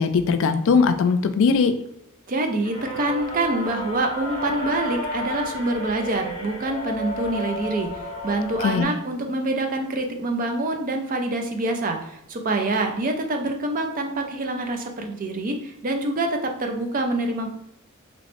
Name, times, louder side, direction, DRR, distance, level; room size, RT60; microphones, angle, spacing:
voice 1, 0.0-1.7 8.6-8.9, left 5 dB, 65° left, 9 dB, 0.3 m, -20 dB
voice 2, 2.3-17.5, right 2 dB, 40° right, 4 dB, 0.5 m, -26 dB
sound 1, 2.6-8.8, equal, 25° left, 0.8 m, -32 dB
3.1 x 3.0 x 3.0 m, 0.79 s
head